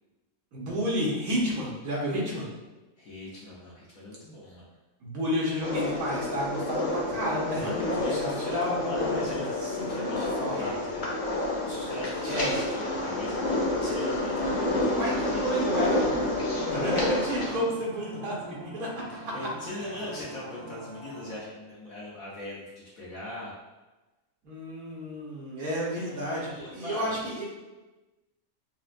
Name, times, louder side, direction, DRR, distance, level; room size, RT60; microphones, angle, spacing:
voice 1, 0.5-2.5 5.0-10.1 10.4-10.7 12.3-12.6 14.9-16.4 16.7-19.3 19.7-19.8 24.4-27.4, equal, 90° right, -5 dB, 1.6 m, -31 dB
voice 2, 3.0-4.7 7.5-15.6 16.7-17.0 17.3-17.5 19.1-23.5 26.0-27.2, left 1 dB, 70° left, -6 dB, 1.3 m, -40 dB
sound 1, 5.6-17.6, left 1 dB, 40° left, 0.8 m, -29 dB
sound 2, 16.0-21.3, right 3 dB, 60° right, 0.6 m, -45 dB
5.8 x 2.1 x 2.5 m, 1.1 s
omnidirectional pair, 1.5 m